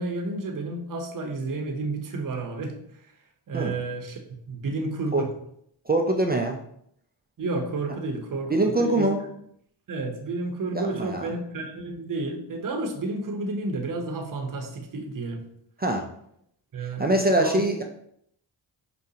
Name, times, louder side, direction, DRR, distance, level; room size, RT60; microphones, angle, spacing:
voice 1, 0.0-2.8 3.5-4.2 4.5-5.3 7.4-9.1 9.9-15.4 16.7-17.1 17.4-17.7, right 2 dB, 40° right, 4 dB, 0.8 m, -31 dB
voice 2, 5.9-6.6 8.5-9.2 10.7-11.2 15.8-16.1 17.0-17.8, right 1 dB, 20° right, 3 dB, 0.4 m, -23 dB
4.8 x 2.3 x 2.8 m, 0.70 s
supercardioid pair, 45°, 49 cm